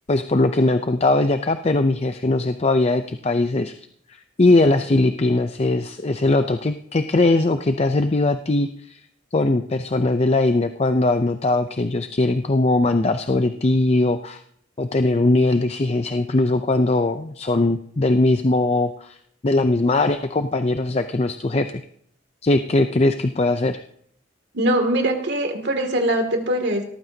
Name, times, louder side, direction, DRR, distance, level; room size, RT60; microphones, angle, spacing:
voice 1, 0.1-3.7 4.4-9.0 9.3-14.4 14.8-19.2 19.4-21.7 22.4-23.8, left 2 dB, 35° left, 8 dB, 0.5 m, -20 dB
voice 2, 24.5-26.8, right 1 dB, 65° right, 4 dB, 2.5 m, -22 dB
18.0 x 14.0 x 2.8 m, 0.66 s
head